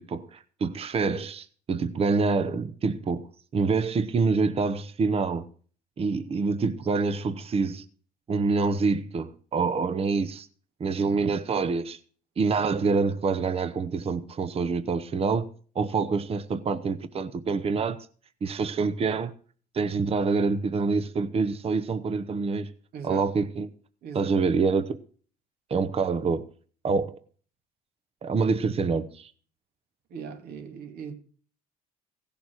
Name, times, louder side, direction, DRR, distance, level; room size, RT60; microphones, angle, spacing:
voice 1, 0.0-3.3 3.5-5.5 6.0-7.8 8.3-10.5 10.8-12.0 12.4-15.5 15.7-18.0 18.4-19.3 19.7-22.7 23.0-23.7 24.1-25.0 25.7-26.5 26.8-27.2 28.2-29.3, right 4 dB, 35° right, 1.0 m, -26 dB
voice 2, 22.9-23.2 24.0-24.3 30.1-31.2, right 7 dB, 70° right, 2.8 m, -39 dB
16.5 x 7.0 x 6.4 m
cardioid pair, 110°, 17 cm